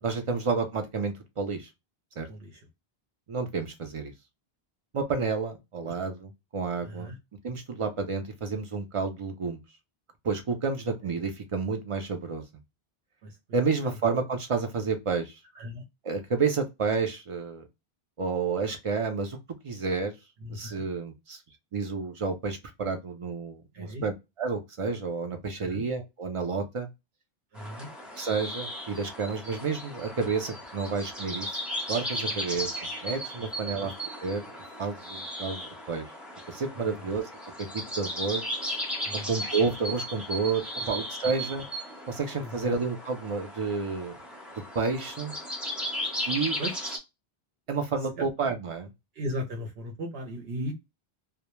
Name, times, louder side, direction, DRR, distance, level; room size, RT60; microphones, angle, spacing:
voice 1, 0.0-1.7 2.2-2.3 3.3-4.1 4.9-7.1 7.4-9.6 10.2-12.4 13.5-15.3 16.0-17.7 18.2-19.4 19.6-20.1 20.5-21.4 21.7-26.9 28.2-31.6 31.9-33.9 34.2-34.4 34.8-36.0 36.5-37.3 37.6-38.5 39.1-41.7 42.1-44.2 44.7-45.3 46.3-46.6 47.7-48.9, right 4 dB, 60° right, 0.3 m, -30 dB
voice 2, 2.3-2.7 5.8-5.9 6.8-7.2 13.2-14.0 15.5-15.8 20.4-20.8 23.7-24.0 25.6-25.8 27.5-27.9 32.2-32.4 33.4-33.9 36.8-37.0 39.0-39.4 42.4-42.7 46.6-47.0 48.2-48.3 49.1-50.7, equal, 75° right, 0.8 m, -38 dB
sound 1, 27.5-47.0, equal, ahead, 0.7 m, -36 dB
2.1 x 2.0 x 2.9 m
omnidirectional pair, 1.1 m